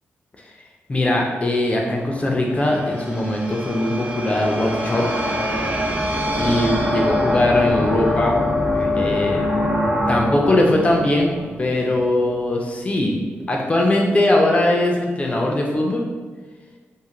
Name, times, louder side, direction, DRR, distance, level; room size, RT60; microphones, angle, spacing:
voice 1, 0.9-5.1 6.3-8.4 8.7-9.6 10.1-11.3 11.6-16.1, left 1 dB, 30° left, -1 dB, 0.4 m, -20 dB
sound 1, 1.9-12.3, left 1 dB, 35° right, 0.5 m, -24 dB
2.5 x 2.4 x 2.9 m, 1.4 s
wide cardioid pair, 105°, 5 cm